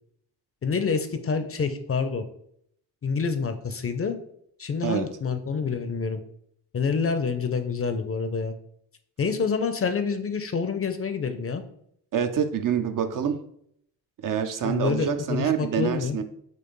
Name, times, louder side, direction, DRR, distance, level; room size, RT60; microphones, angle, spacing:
voice 1, 0.6-2.2 3.0-4.2 4.6-6.2 6.7-8.6 9.2-11.6 14.6-16.2, left 5 dB, 30° left, 8 dB, 0.5 m, -27 dB
voice 2, 12.1-13.4 14.2-16.2, right 8 dB, 50° right, 8 dB, 0.5 m, -26 dB
4.3 x 2.4 x 3.1 m, 0.69 s
supercardioid pair, 45°, 43 cm